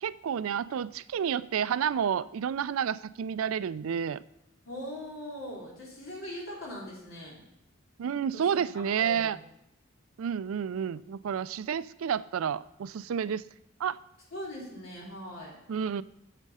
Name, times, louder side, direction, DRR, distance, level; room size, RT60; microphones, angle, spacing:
voice 1, 0.0-4.2 8.0-9.4 10.2-13.4 13.8-14.0 15.7-16.0, right 8 dB, 80° right, 17 dB, 0.4 m, -30 dB
voice 2, 4.7-7.4 8.3-9.4 14.3-15.5, left 1 dB, 75° left, -4 dB, 3.6 m, -41 dB
8.2 x 7.5 x 5.4 m, 0.83 s
head